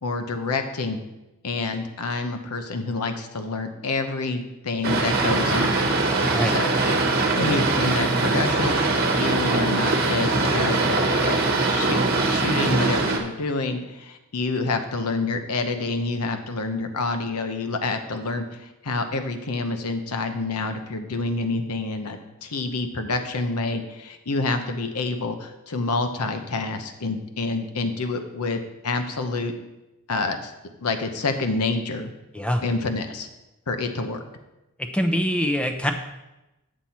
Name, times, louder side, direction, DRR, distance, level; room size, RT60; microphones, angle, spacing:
voice 1, 0.0-1.0 1.4-5.9 6.4-29.5 30.1-30.5 30.8-32.1 32.6-33.3 33.7-34.2, left 3 dB, 85° left, 7 dB, 0.8 m, -28 dB
Boat Water vehicle, 4.8-13.2, right 3 dB, 45° right, 1.2 m, -22 dB
voice 2, 34.9-35.9, equal, 5° left, 5 dB, 0.6 m, -23 dB
7.6 x 7.4 x 4.3 m, 0.97 s
head